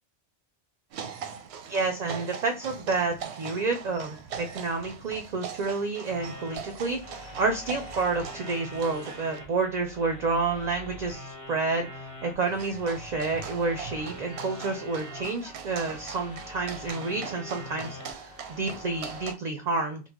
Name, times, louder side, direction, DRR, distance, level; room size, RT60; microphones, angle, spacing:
sound 1, 0.9-9.4 12.5-19.3, right 7 dB, 90° right, 0.8 m, -41 dB
voice 1, 1.7-20.0, right 3 dB, 55° right, 6 dB, 0.5 m, -29 dB
sound 2, 6.1-19.3, left 1 dB, 35° left, 1.0 m, -44 dB
3.7 x 2.1 x 2.9 m, 0.32 s
omnidirectional pair, 1.1 m